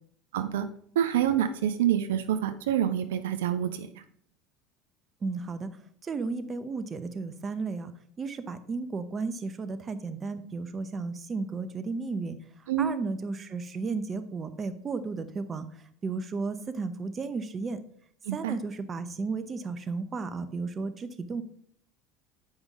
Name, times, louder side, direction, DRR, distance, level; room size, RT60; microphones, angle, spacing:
voice 1, 0.3-0.7 1.0-3.9 12.7-12.9 18.3-18.5, right 10 dB, 80° right, 8 dB, 0.5 m, -27 dB
voice 2, 5.2-5.7 6.0-7.9 8.2-12.4 12.8-15.7 16.0-17.8 18.3-21.4, right 4 dB, 30° right, 10 dB, 0.7 m, -33 dB
8.0 x 5.3 x 3.6 m, 0.63 s
hypercardioid pair, 80°, 0 cm